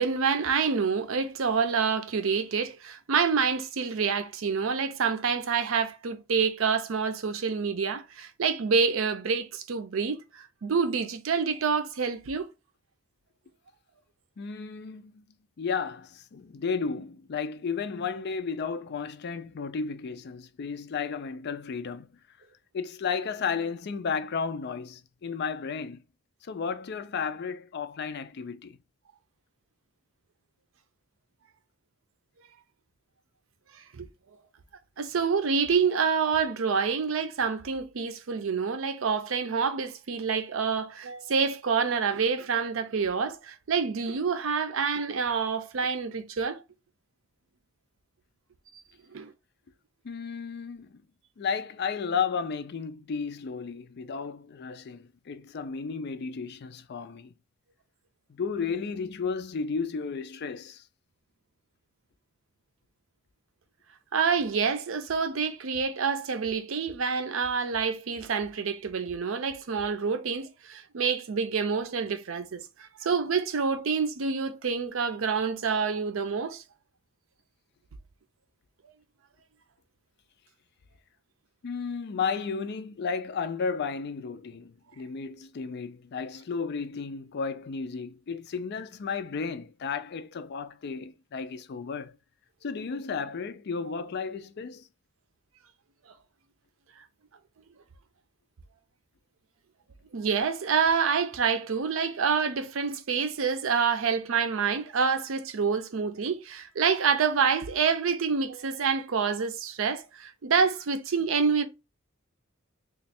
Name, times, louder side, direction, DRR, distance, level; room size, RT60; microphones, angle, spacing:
voice 1, 0.0-12.5 33.9-34.1 35.0-46.6 49.1-49.3 64.1-76.6 100.1-111.7, right 5 dB, 80° right, 0.5 m, -27 dB
voice 2, 14.4-15.3 15.6-22.1 22.7-26.0 26.4-28.8 50.0-51.0 51.4-57.3 58.3-60.8 81.6-92.2 92.6-94.9, left 5 dB, 55° left, 0.4 m, -33 dB
3.1 x 2.3 x 4.2 m
head